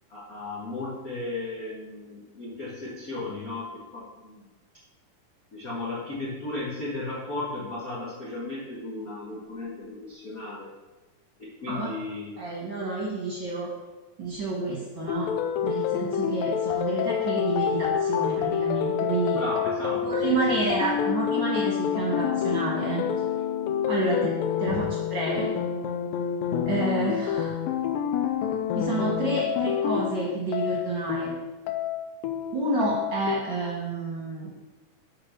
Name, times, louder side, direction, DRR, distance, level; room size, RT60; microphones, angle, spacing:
voice 1, 0.1-4.5 5.5-10.7 11.4-12.4 19.3-21.0 24.7-24.8, left 2 dB, 70° left, -6 dB, 0.8 m, -35 dB
voice 2, 12.4-13.7 14.2-15.3 15.6-19.4 20.0-23.0 23.9-24.3 24.6-25.5 26.6-27.6 28.7-31.3 32.5-34.5, right 3 dB, 45° right, -4 dB, 1.5 m, -29 dB
sound 1, 15.1-33.4, left 9 dB, 85° left, 2.4 m, -28 dB
7.4 x 4.6 x 6.4 m, 1.2 s
omnidirectional pair, 4.0 m